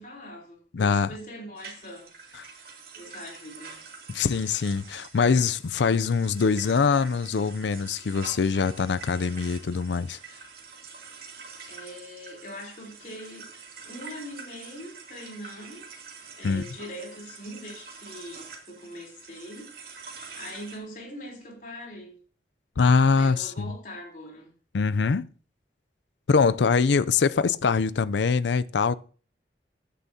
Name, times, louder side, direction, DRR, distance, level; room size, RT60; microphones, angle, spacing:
voice 1, 0.0-2.7 3.0-3.8 11.7-13.5 13.8-15.9 16.4-22.2 23.2-24.5, equal, 45° left, 3.6 m, -42 dB
voice 2, 0.7-1.1 4.1-10.2 16.4-16.6 22.8-23.5 24.7-25.3 26.3-28.9, left 5 dB, 80° left, 0.5 m, -23 dB
sound 1, 1.6-20.8, right 5 dB, 55° right, 2.7 m, -46 dB
15.0 x 10.0 x 2.8 m
head